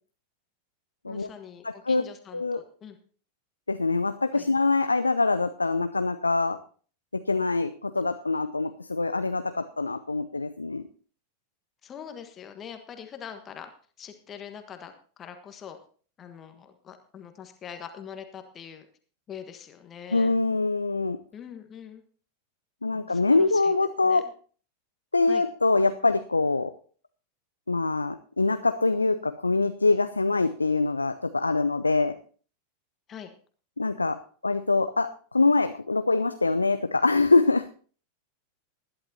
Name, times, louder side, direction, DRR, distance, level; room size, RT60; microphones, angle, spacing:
voice 1, 1.0-3.0 4.3-4.5 11.8-13.7 14.0-14.9 15.2-15.8 16.2-18.9 19.3-20.4 21.3-22.0 22.9-23.7 24.0-24.2 25.3-25.4 33.1-33.3, left 8 dB, 25° left, 7 dB, 1.4 m, -43 dB
voice 2, 1.6-2.0 2.3-2.6 3.7-6.6 7.1-10.8 20.1-21.2 22.8-24.3 25.1-26.7 27.7-32.2 33.8-37.7, left 3 dB, 80° left, 10 dB, 0.5 m, -24 dB
20.0 x 11.5 x 2.8 m, 0.43 s
figure-of-eight pair, 90°, 0 cm